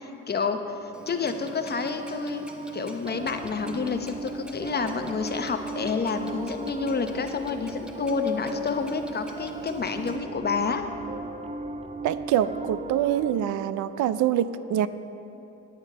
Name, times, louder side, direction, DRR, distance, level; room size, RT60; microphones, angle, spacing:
voice 1, 0.3-2.5 2.7-10.8, left 5 dB, 35° left, 7 dB, 0.8 m, -29 dB
Clock, 0.9-10.2, left 1 dB, 5° right, 1.0 m, -47 dB
Piano, 0.9-13.4, right 3 dB, 20° right, 0.6 m, -38 dB
sound 1, 3.0-13.0, right 1 dB, 40° right, 2.7 m, -48 dB
voice 2, 12.0-14.9, right 10 dB, 80° right, 14 dB, 0.5 m, -25 dB
9.5 x 9.3 x 5.5 m, 2.9 s
cardioid pair, 90°, 30 cm